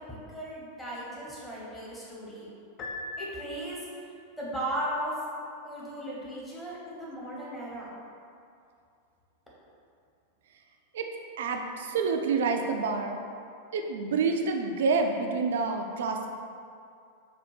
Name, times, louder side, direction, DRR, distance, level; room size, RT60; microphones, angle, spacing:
voice 1, 0.0-2.5 3.2-3.8 4.4-5.1 5.6-7.9, right 1 dB, 10° left, -7 dB, 1.0 m, -36 dB
Piano, 2.8-4.0, left 2 dB, 30° left, 0.4 m, -40 dB
voice 2, 11.4-13.2 13.7-16.3, right 4 dB, 60° right, 4 dB, 0.3 m, -28 dB
4.2 x 2.4 x 3.1 m, 2.4 s
figure-of-eight pair, 90°, 0 cm